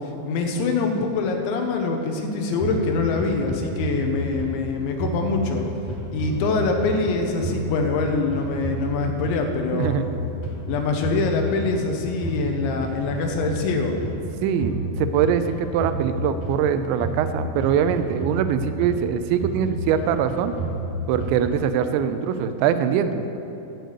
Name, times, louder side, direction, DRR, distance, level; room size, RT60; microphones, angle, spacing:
voice 1, 0.3-5.6 6.1-10.0 10.7-14.0, left 3 dB, 80° left, 3 dB, 3.3 m, -24 dB
sound 1, 2.6-4.7 5.0-7.1 7.4-9.5 9.8-11.9 12.2-14.2 14.6-16.7 17.0-19.1 19.4-21.5, right 1 dB, 30° left, 3.6 m, -30 dB
voice 2, 9.7-10.1 14.4-20.5 21.1-23.3, right 8 dB, 80° right, 10 dB, 2.8 m, -23 dB
14.0 x 6.7 x 8.0 m, 3.0 s
omnidirectional pair, 5.5 m